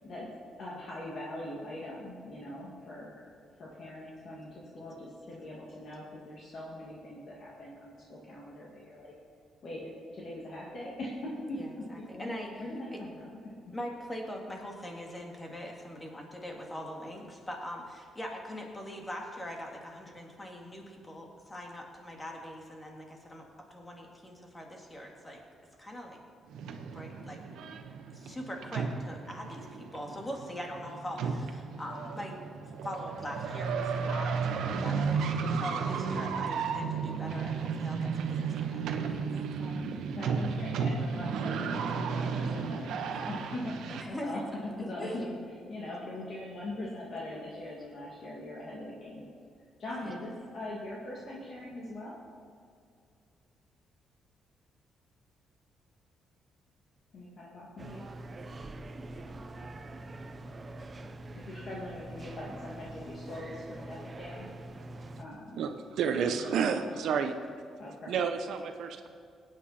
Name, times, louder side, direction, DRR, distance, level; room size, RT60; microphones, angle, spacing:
voice 1, 0.0-3.1 3.6-9.1 9.6-12.3 12.6-13.5 39.5-39.8 40.1-45.4 45.7-49.2 49.8-52.1 57.1-58.1 61.4-64.5 65.2-65.6 66.3-66.9 67.8-68.3, left 1 dB, 40° left, -5 dB, 2.2 m, -41 dB
voice 2, 11.5-12.5 12.9-13.0 13.7-23.4 23.7-25.4 25.8-26.2 26.9-27.4 28.1-32.4 32.8-34.5 34.8-38.8 39.1-39.5 43.9-44.4 45.0-45.2 50.0-50.2, equal, 15° left, 0 dB, 2.0 m, -42 dB
sound 1, 26.5-44.0, right 5 dB, 80° right, 1.2 m, -33 dB
sound 2, 57.8-65.3, right 2 dB, 25° right, 0.6 m, -44 dB
voice 3, 65.6-67.4 68.1-69.1, right 6 dB, 65° right, 7 dB, 0.9 m, -30 dB
23.5 x 9.5 x 4.3 m, 2.3 s
cardioid pair, 170°, 0 cm